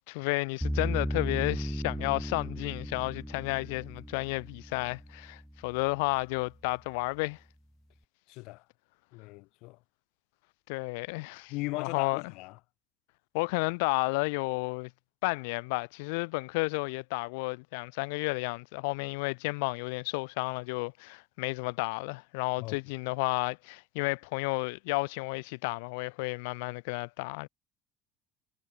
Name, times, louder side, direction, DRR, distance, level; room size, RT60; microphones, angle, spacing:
voice 1, 0.1-7.4 10.7-12.3 13.3-14.9 15.2-27.5, left 29 dB, 90° left, 4.3 m, -32 dB
sound 1, 0.6-5.7, equal, ahead, 3.0 m, -35 dB
voice 2, 8.3-8.6 9.1-9.8 11.5-12.6 22.6-22.8, left 23 dB, 65° left, 7.3 m, -38 dB
cardioid pair, 155°, 0 cm